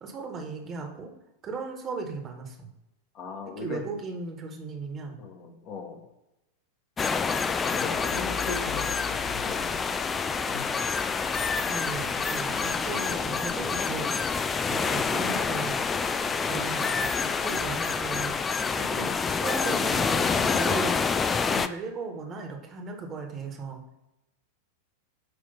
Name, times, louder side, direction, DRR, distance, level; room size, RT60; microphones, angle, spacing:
voice 1, 0.0-1.1 1.4-2.7 3.6-5.2 11.7-14.3 14.7-15.8 16.4-18.3 18.7-21.0 21.4-23.8, right 4 dB, 25° right, 3 dB, 1.3 m, -36 dB
voice 2, 3.1-3.8 5.2-6.0 7.7-9.9 10.2-10.8, left 4 dB, 40° left, 3 dB, 1.2 m, -38 dB
sound 1, 7.0-21.7, left 5 dB, 20° left, 0.4 m, -27 dB
8.1 x 2.9 x 5.6 m, 0.89 s
figure-of-eight pair, 90°, 0 cm